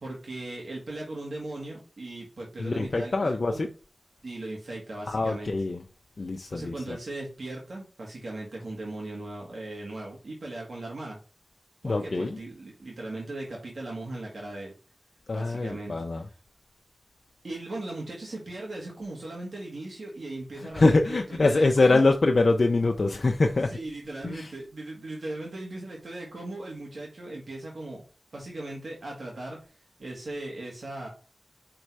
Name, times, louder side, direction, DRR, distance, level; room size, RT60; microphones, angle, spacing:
voice 1, 0.0-3.7 4.2-5.5 6.5-11.2 11.8-14.7 15.3-16.2 17.4-22.1 23.7-28.0 28.3-31.1, right 2 dB, 80° right, 1.7 m, -38 dB
voice 2, 2.6-3.7 5.1-5.8 6.2-7.0 11.8-12.4 15.3-16.3 20.6-23.7 24.2-24.5, left 3 dB, 70° left, 0.7 m, -24 dB
5.5 x 3.9 x 4.7 m
cardioid pair, 45°, 0 cm